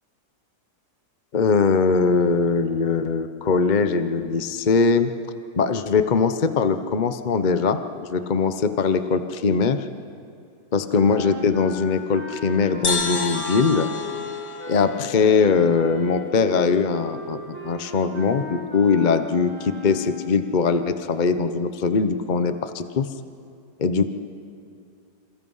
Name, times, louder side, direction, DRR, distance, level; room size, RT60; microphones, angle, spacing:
voice 1, 1.3-5.1 5.6-7.8 8.1-9.9 10.7-13.9 14.7-23.1 23.8-24.1, left 5 dB, 40° left, 9 dB, 0.7 m, -21 dB
sound 1, 10.9-20.5, left 3 dB, 45° right, 5.2 m, -36 dB
sound 2, 12.8-16.4, left 4 dB, 60° left, 2.2 m, -31 dB
27.5 x 27.0 x 5.6 m, 2.4 s
omnidirectional pair, 1.9 m